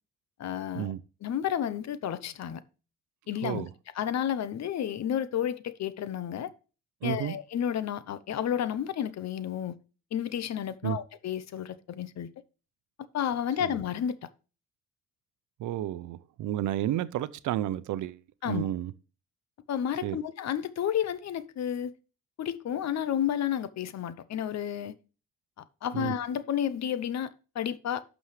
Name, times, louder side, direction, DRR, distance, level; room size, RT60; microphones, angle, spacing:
voice 1, 0.4-0.9 1.2-2.6 3.3-3.7 4.0-6.5 7.0-9.8 10.1-12.3 13.1-14.2 18.4-18.6 19.7-21.9 22.4-25.0 25.8-28.0, left 9 dB, 60° left, 0.9 m, -31 dB
voice 2, 7.0-7.3 10.8-11.0 13.6-13.7 15.6-18.9 20.0-20.2 25.9-26.1, right 12 dB, 80° right, 0.7 m, -31 dB
11.5 x 6.3 x 3.3 m
cardioid pair, 90°, 30 cm